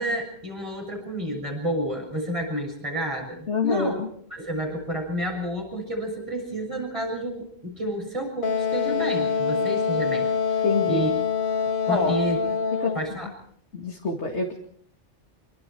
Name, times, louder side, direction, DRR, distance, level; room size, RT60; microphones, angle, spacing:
voice 1, 0.0-3.9 4.3-11.2 11.8-12.4 12.9-13.3, right 1 dB, 25° right, 2 dB, 6.9 m, -30 dB
voice 2, 3.5-4.1 10.6-11.1 11.9-12.1 12.7-12.9 13.7-14.6, left 3 dB, 70° left, 1 dB, 2.4 m, -26 dB
Wind instrument woodwind instrument, 8.4-13.1, left 6 dB, 50° left, 1.4 m, -25 dB
25.5 x 23.5 x 4.6 m, 0.63 s
omnidirectional pair, 1.2 m